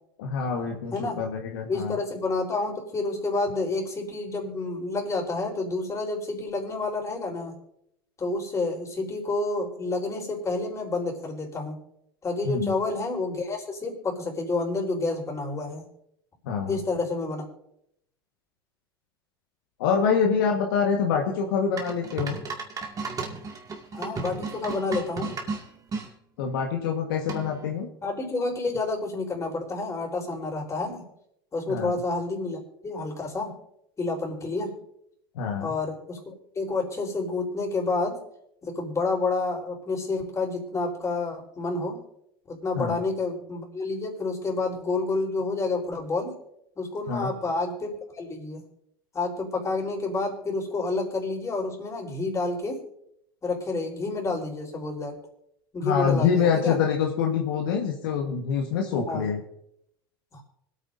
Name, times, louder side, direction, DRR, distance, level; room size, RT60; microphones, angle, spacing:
voice 1, 0.2-2.0 12.4-12.7 16.4-16.8 19.8-22.4 26.4-27.9 31.7-31.9 35.3-35.7 42.7-43.0 47.1-47.3 55.8-59.4, left 6 dB, 75° left, 2 dB, 1.5 m, -26 dB
voice 2, 1.7-7.5 8.2-11.8 12.2-15.8 16.7-17.4 23.9-25.3 28.0-31.1 31.5-33.5 34.0-34.7 35.6-38.2 38.6-42.0 42.5-46.3 46.8-48.6 49.1-52.8 53.4-55.1 55.7-56.8 58.9-59.3 60.3-60.4, left 3 dB, 25° left, 0 dB, 4.1 m, -29 dB
sound 1, 21.8-26.1 27.3-27.7, right 4 dB, 30° right, 2.1 m, -34 dB
25.0 x 9.0 x 2.7 m, 0.76 s
hypercardioid pair, 85°, 12 cm